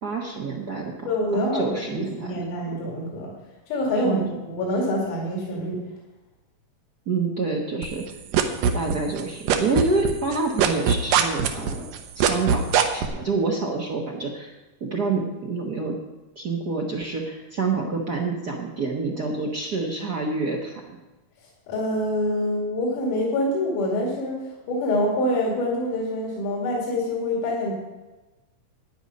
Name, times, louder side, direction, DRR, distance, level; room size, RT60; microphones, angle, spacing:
voice 1, 0.0-1.1 1.3-2.4 4.0-4.3 7.1-8.1 8.7-14.5 14.8-16.0 16.4-20.8, right 3 dB, 70° right, 0 dB, 0.9 m, -27 dB
voice 2, 1.0-3.3 3.7-5.8 21.7-24.4 24.7-27.7, left 1 dB, 70° left, -3 dB, 3.8 m, -26 dB
sound 1, 7.8-9.2 9.5-13.1, right 8 dB, 85° right, 2.6 m, -20 dB
12.5 x 9.7 x 5.3 m, 1.1 s
omnidirectional pair, 3.7 m